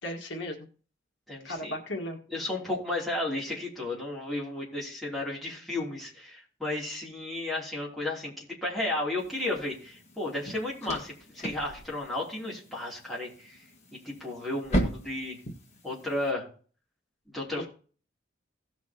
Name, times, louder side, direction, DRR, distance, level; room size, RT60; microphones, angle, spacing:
voice 1, 0.0-0.6 1.4-2.2, left 1 dB, 65° left, 2 dB, 1.7 m, -35 dB
voice 2, 1.3-1.7 2.3-13.6 14.0-15.4 15.8-16.5 17.3-17.7, left 2 dB, ahead, -7 dB, 3.1 m, -33 dB
sound 1, 9.2-16.3, right 1 dB, 35° left, 1.6 m, -37 dB
17.5 x 6.0 x 2.9 m, 0.41 s
head